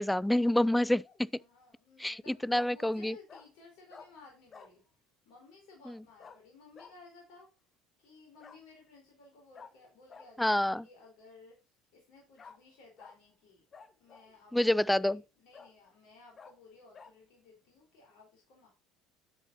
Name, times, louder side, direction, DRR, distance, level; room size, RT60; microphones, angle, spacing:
voice 1, 0.0-1.3 2.0-3.2 5.9-6.0 10.4-10.9 14.5-15.2, left 1 dB, 5° left, 0.4 m, -28 dB
Bark, 0.8-1.2 2.5-2.7 3.3-3.5 3.9-4.1 4.5-4.7 6.2-6.4 6.7-6.9 8.4-8.6 9.5-9.7 10.1-10.3 12.4-12.6 13.0-13.2 13.7-14.3 14.9-15.0 15.5-15.7 16.4-16.5 16.9-17.1, left 5 dB, 30° left, 1.3 m, -52 dB
voice 2, 1.4-4.8 5.2-7.5 8.0-13.7 14.0-18.7, left 3 dB, 55° left, 4.4 m, -57 dB
11.5 x 8.1 x 2.9 m
figure-of-eight pair, 60°, 0 cm